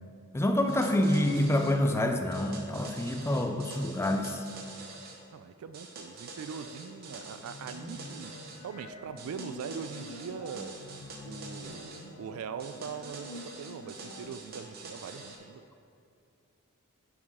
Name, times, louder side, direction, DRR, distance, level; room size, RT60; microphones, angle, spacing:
voice 1, 0.3-4.5, left 1 dB, 10° left, 5 dB, 0.4 m, -27 dB
sound 1, 0.7-1.8 2.3-5.2 5.7-8.6 9.2-12.0 12.6-15.4, right 3 dB, 45° right, 1.0 m, -46 dB
voice 2, 5.3-8.3 8.6-10.8 11.2-15.6, right 6 dB, 65° right, 11 dB, 0.3 m, -41 dB
sound 2, 7.1-14.3, left 1 dB, 85° left, 0.7 m, -47 dB
9.3 x 4.8 x 3.7 m, 2.5 s
head